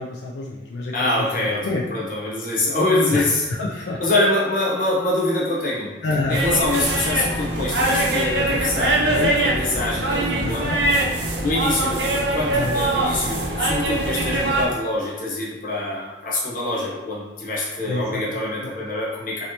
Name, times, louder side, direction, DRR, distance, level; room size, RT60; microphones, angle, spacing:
voice 1, 0.0-1.8 3.1-4.0 6.0-6.4 9.0-9.3 10.3-10.8 12.5-12.8 17.8-18.5, left 2 dB, 75° left, -2 dB, 0.4 m, -28 dB
voice 2, 0.9-3.4 4.0-5.9 6.3-10.7 11.4-19.4, left 2 dB, 50° left, -5 dB, 0.8 m, -24 dB
sound 1, 6.3-14.7, right 1 dB, 70° right, 0.5 m, -22 dB
3.1 x 2.8 x 2.8 m, 1.2 s
head